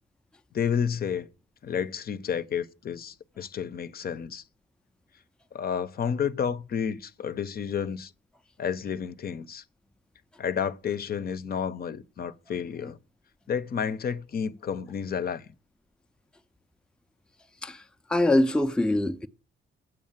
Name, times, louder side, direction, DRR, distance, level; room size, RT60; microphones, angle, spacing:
voice 1, 0.5-1.3 1.6-4.4 5.5-8.1 8.6-9.6 10.4-13.0 13.5-15.4, left 7 dB, 50° left, 0.8 m, -31 dB
voice 2, 18.1-19.3, left 1 dB, 5° left, 0.6 m, -24 dB
8.2 x 6.5 x 7.2 m
cardioid pair, 90°, 20 cm